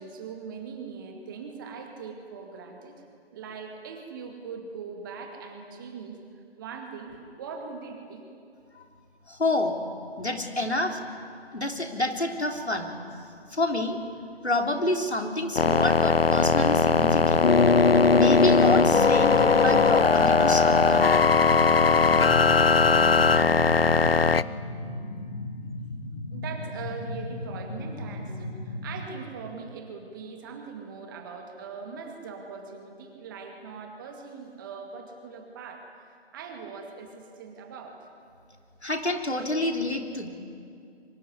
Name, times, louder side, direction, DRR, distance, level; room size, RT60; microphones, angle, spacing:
voice 1, 0.0-3.1 3.3-6.2 6.6-8.2 26.3-38.1, right 5 dB, 20° right, 3 dB, 2.1 m, -41 dB
voice 2, 9.3-9.8 10.2-11.0 11.5-12.9 13.5-14.0 14.4-17.5 18.1-21.1 38.8-40.3, left 2 dB, 90° left, 3 dB, 3.6 m, -28 dB
sound 1, 15.6-24.4, left 5 dB, 65° left, 0.8 m, -19 dB
sound 2, 16.3-29.1, left 1 dB, 45° left, 3.0 m, -35 dB
24.0 x 22.5 x 9.7 m, 2.3 s
figure-of-eight pair, 150°, 32 cm